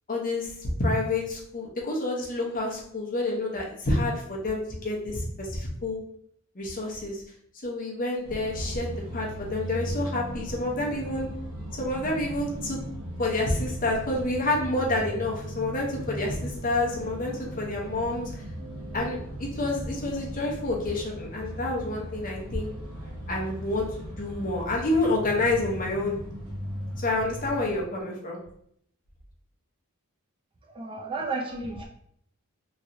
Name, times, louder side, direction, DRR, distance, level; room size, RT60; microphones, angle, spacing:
voice 1, 0.1-6.0 6.5-7.2 7.6-11.3 11.8-12.8 13.2-18.4 18.9-22.7 23.3-26.2 27.0-28.4, left 2 dB, 40° left, -2 dB, 0.8 m, -28 dB
sound 1, 8.2-27.8, right 1 dB, 60° right, 1.0 m, -37 dB
voice 2, 30.8-31.8, right 3 dB, 25° right, -1 dB, 0.4 m, -32 dB
3.1 x 2.9 x 2.6 m, 0.68 s
head